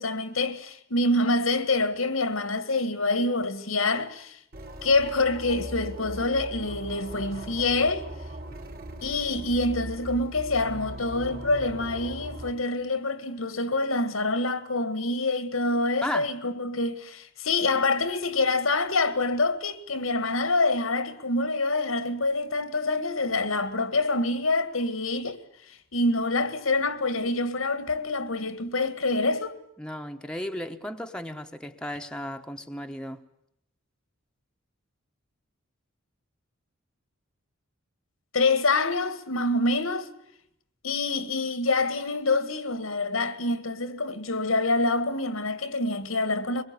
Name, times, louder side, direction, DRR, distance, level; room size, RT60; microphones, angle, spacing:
voice 1, 0.0-4.4 4.8-8.1 9.0-25.4 25.9-29.6 38.3-40.1 40.8-46.6, left 2 dB, 90° left, 2.0 m, -26 dB
sound 1, 4.5-12.5, right 1 dB, 45° right, 3.6 m, -39 dB
voice 2, 16.0-16.3 29.8-33.2, left 1 dB, 5° left, 1.2 m, -34 dB
23.5 x 22.0 x 9.7 m
head